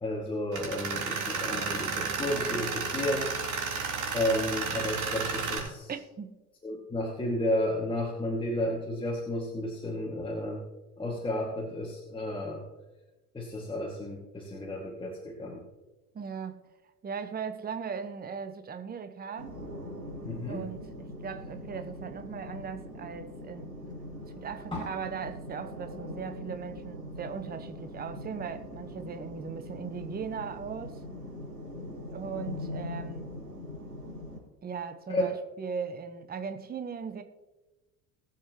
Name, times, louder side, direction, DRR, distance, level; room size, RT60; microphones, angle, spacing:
voice 1, 0.0-3.3 4.1-5.9 6.6-10.6 11.0-12.6 13.3-15.6 20.2-20.6 24.7-24.9 35.1-35.4, left 1 dB, 10° left, 2.2 m, -32 dB
Tools, 0.5-5.6, right 5 dB, 40° right, 3.7 m, -32 dB
voice 2, 5.9-6.4 16.1-16.6 17.0-19.6 20.5-23.7 24.3-31.0 32.1-33.3 34.6-37.2, right 6 dB, 20° right, 1.1 m, -38 dB
sound 1, 19.4-34.4, left 1 dB, 85° right, 4.2 m, -42 dB
20.5 x 7.6 x 3.0 m
figure-of-eight pair, 70°, 46 cm